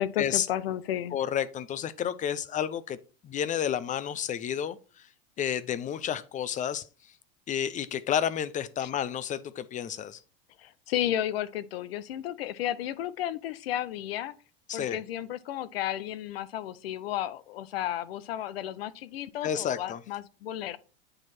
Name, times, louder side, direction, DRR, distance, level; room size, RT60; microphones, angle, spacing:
voice 1, 0.0-1.1 8.8-8.9 10.6-14.3 14.7-20.8, left 12 dB, 80° left, 0.6 m, -33 dB
voice 2, 1.1-3.0 3.2-4.8 5.4-6.8 7.5-10.2 14.7-15.0 19.4-20.0, left 9 dB, 25° left, 0.5 m, -30 dB
8.8 x 3.0 x 4.2 m
hypercardioid pair, 105°, 29 cm